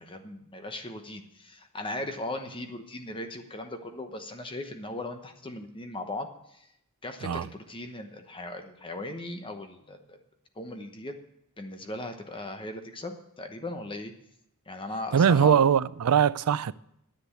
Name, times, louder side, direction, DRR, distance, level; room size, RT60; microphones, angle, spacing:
voice 1, 0.0-6.7 7.0-10.2 10.6-11.1 11.6-14.1 14.7-15.6, left 2 dB, 25° left, 1.0 m, -38 dB
voice 2, 15.1-16.7, right 7 dB, 80° right, 0.4 m, -21 dB
10.0 x 7.8 x 9.5 m
head